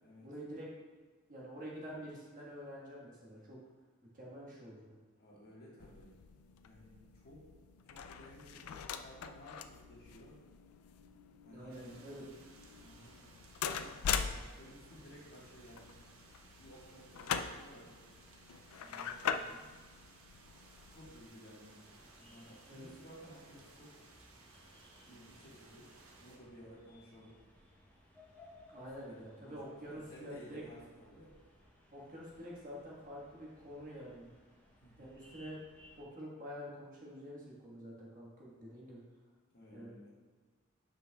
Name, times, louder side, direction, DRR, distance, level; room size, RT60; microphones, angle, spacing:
voice 1, 0.2-0.7 1.3-3.6 4.1-4.9 11.4-12.2 22.7-22.9 28.7-30.6 31.9-34.3 35.0-35.6 36.0-39.0 39.7-39.9, equal, 35° right, -4 dB, 1.4 m, -47 dB
voice 2, 5.2-6.1 6.6-7.5 7.8-8.6 9.0-10.4 11.4-12.1 12.8-16.0 16.4-17.9 18.8-19.6 20.9-24.0 25.0-25.9 26.2-27.4 29.1-31.4 34.8-35.1 39.5-40.2, equal, 45° left, -5 dB, 1.6 m, -56 dB
sound 1, 5.8-21.3, left 7 dB, 85° left, 0.4 m, -42 dB
Rain Thunder, 11.7-26.4, right 2 dB, 75° right, 0.9 m, -60 dB
sound 2, 21.6-36.0, left 1 dB, 10° left, 0.8 m, -63 dB
9.5 x 5.3 x 2.3 m, 1.4 s
head